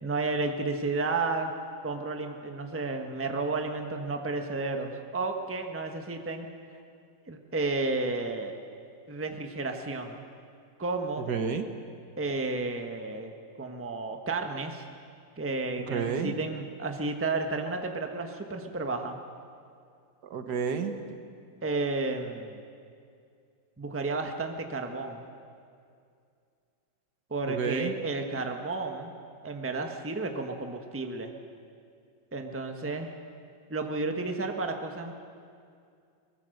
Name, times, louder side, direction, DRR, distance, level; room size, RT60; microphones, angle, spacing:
voice 1, 0.0-1.5 1.8-6.5 7.3-8.5 9.1-10.2 10.8-11.3 12.2-13.3 13.6-14.8 15.4-19.2 21.6-22.6 23.8-25.3 27.3-29.1 29.4-31.3 32.3-33.1 33.7-35.1, right 3 dB, 10° right, 4 dB, 1.1 m, -32 dB
voice 2, 11.3-11.6 15.9-16.4 20.2-21.0 27.5-28.0, right 6 dB, 60° right, 7 dB, 1.6 m, -30 dB
23.0 x 21.0 x 6.6 m, 2.3 s
omnidirectional pair, 2.0 m